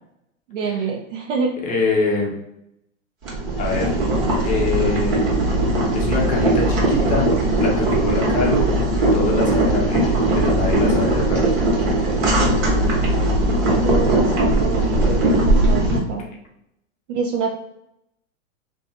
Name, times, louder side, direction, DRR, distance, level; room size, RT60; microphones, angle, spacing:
voice 1, 0.5-1.5 13.8-16.2 17.1-17.5, right 5 dB, 70° right, 0 dB, 0.6 m, -26 dB
voice 2, 1.6-2.3 3.6-3.9 4.4-5.3 5.9-8.6 9.1-11.4 16.2-16.4, left 3 dB, 20° left, -1 dB, 0.6 m, -24 dB
Boiling, 3.2-16.0, right 1 dB, 45° right, 1.2 m, -19 dB
2.6 x 2.3 x 2.5 m, 0.81 s
hypercardioid pair, 120°, 38 cm